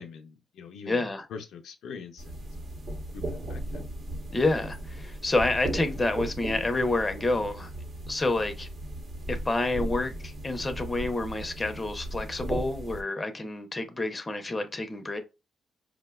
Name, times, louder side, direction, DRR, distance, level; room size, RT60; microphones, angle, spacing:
voice 1, 0.0-1.0 1.3-2.4 3.1-3.9, left 6 dB, 85° left, 0.5 m, -43 dB
voice 2, 0.9-1.3 4.3-7.7 8.1-8.7 9.3-15.2, left 2 dB, 25° left, 0.6 m, -28 dB
sound 1, 2.2-13.0, right 1 dB, 55° right, 0.9 m, -37 dB
4.6 x 2.2 x 2.2 m
cardioid pair, 85°, 0 cm